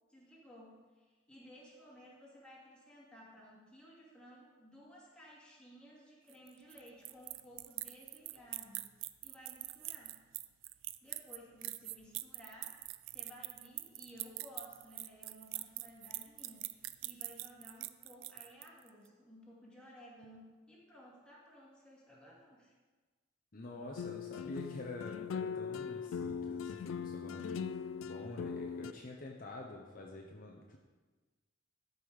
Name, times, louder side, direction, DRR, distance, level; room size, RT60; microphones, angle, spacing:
voice 1, 0.1-8.8 9.2-10.1 11.0-12.8 13.1-22.7, equal, 5° left, -6 dB, 2.3 m, -56 dB
sound 1, 6.3-18.9, right 18 dB, 75° right, 0.4 m, -43 dB
voice 2, 23.5-30.8, left 2 dB, 45° left, 0 dB, 0.9 m, -47 dB
sound 2, 24.0-28.9, left 6 dB, 85° left, 0.3 m, -40 dB
12.0 x 5.6 x 4.9 m, 1.3 s
head